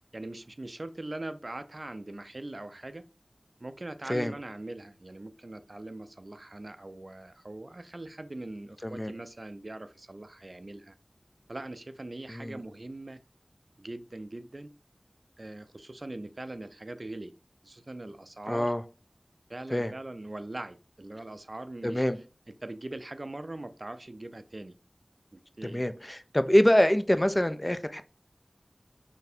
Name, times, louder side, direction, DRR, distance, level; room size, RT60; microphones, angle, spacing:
voice 1, 0.1-3.1 3.6-10.9 11.5-13.2 13.8-14.7 15.4-17.3 17.6-18.7 19.5-22.0 22.6-24.8 25.3-25.8, right 2 dB, 60° right, 0.4 m, -41 dB
voice 2, 12.3-12.6 18.5-18.8 19.7-19.9 21.8-22.2 25.6-28.0, left 1 dB, 25° left, 0.4 m, -25 dB
4.1 x 3.2 x 2.7 m
wide cardioid pair, 40°, 0 cm